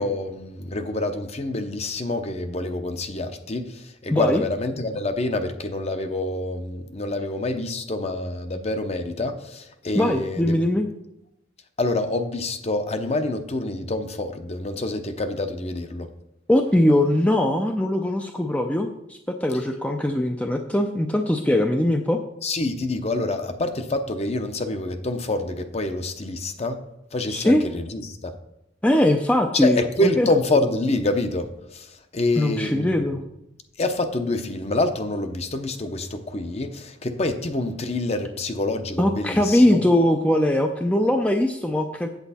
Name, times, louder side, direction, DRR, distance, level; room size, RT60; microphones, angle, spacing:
voice 1, 0.0-3.7 4.0-10.6 11.8-16.1 22.4-26.8 27.1-28.3 29.5-31.9 32.1-32.9 33.8-39.8, left 2 dB, 35° left, 8 dB, 0.7 m, -26 dB
voice 2, 4.1-4.4 9.9-10.9 16.5-22.2 27.3-27.6 28.8-30.3 32.4-33.2 39.0-42.1, left 1 dB, 5° left, 4 dB, 0.4 m, -21 dB
8.2 x 7.7 x 4.2 m, 0.82 s
head